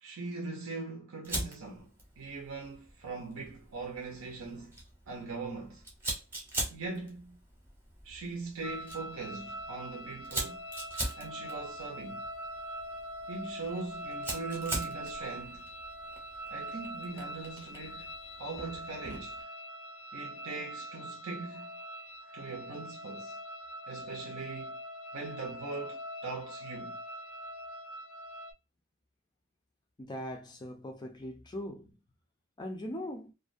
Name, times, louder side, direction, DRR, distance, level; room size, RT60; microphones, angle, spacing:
voice 1, 0.0-5.8 6.7-7.4 8.0-10.6 11.2-12.2 13.3-15.7 16.5-18.1 18.4-19.5 20.1-21.7 22.3-23.4 23.9-24.8 25.1-27.0, right 3 dB, 75° right, 0.6 m, -41 dB
Fire, 1.2-19.4, right 1 dB, 10° right, 0.7 m, -42 dB
sound 1, 8.6-28.5, equal, 75° left, 0.6 m, -43 dB
voice 2, 30.0-32.0 32.6-33.3, left 1 dB, 20° left, 0.4 m, -40 dB
2.4 x 2.2 x 2.5 m
head